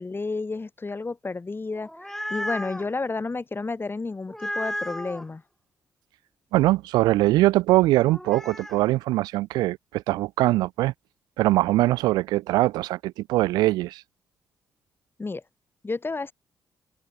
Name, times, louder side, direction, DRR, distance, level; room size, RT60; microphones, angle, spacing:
voice 1, 0.0-1.9 2.3-5.4 15.2-15.4 15.8-16.3, left 3 dB, 30° left, 5.9 m, -31 dB
sound 1, 1.7-2.9 4.3-5.2 8.1-8.8, equal, 5° left, 2.7 m, -33 dB
voice 2, 6.5-10.9 11.4-14.0, right 17 dB, 75° right, 0.5 m, -22 dB
open air
hypercardioid pair, 45°, 7 cm